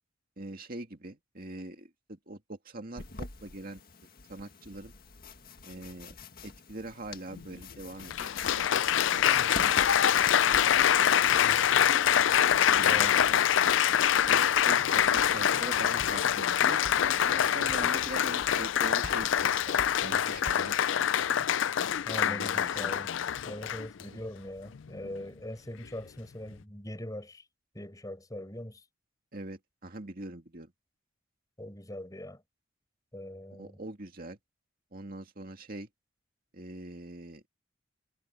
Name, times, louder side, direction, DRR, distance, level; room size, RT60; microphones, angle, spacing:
voice 1, 0.4-3.8 4.3-4.9 5.6-6.2 6.4-9.7 10.4-10.8 12.7-13.4 14.3-16.8 17.2-20.8 21.1-21.3 22.2-22.9 24.1-24.2 29.3-30.7 33.5-34.4 34.9-35.9 36.5-37.5, right 2 dB, 45° right, 2.2 m, -43 dB
sound 1, 3.0-20.5, left 3 dB, 50° left, 1.9 m, -47 dB
Applause, 7.3-7.4 8.1-24.0 24.7-25.1, left 9 dB, 65° left, 0.4 m, -25 dB
voice 2, 22.1-23.1 23.4-27.4 27.8-28.8 31.6-32.4 33.1-33.8, left 1 dB, 20° left, 5.2 m, -41 dB
head